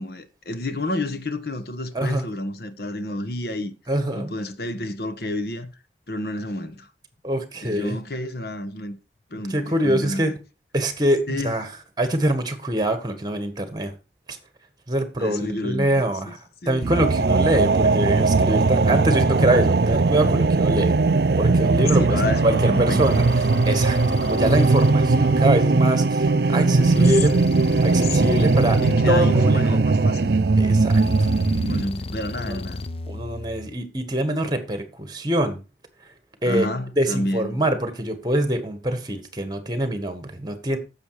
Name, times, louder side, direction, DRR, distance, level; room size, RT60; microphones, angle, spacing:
voice 1, 0.0-3.7 4.1-5.8 6.1-6.9 7.6-9.0 9.3-10.3 11.3-11.6 15.2-16.3 16.6-16.9 21.9-23.0 26.7-27.2 28.0-30.3 31.6-32.9 36.4-37.6, left 1 dB, 60° left, 1.2 m, -30 dB
voice 2, 3.9-4.3 7.2-8.0 9.3-10.3 10.7-11.7 12.0-13.9 14.3-14.4 14.9-16.4 16.7-20.9 21.4-23.2 23.7-27.3 27.8-28.8 29.1-29.8 30.6-31.3 32.4-32.6 33.1-35.6 36.4-36.7 37.0-40.8, right 1 dB, 25° right, 1.6 m, -24 dB
sound 1, 16.8-31.8, right 3 dB, 65° right, 0.5 m, -19 dB
sound 2, 23.0-26.1 26.8-30.1 30.9-33.8, left 2 dB, 35° left, 0.6 m, -34 dB
10.0 x 7.2 x 4.9 m
head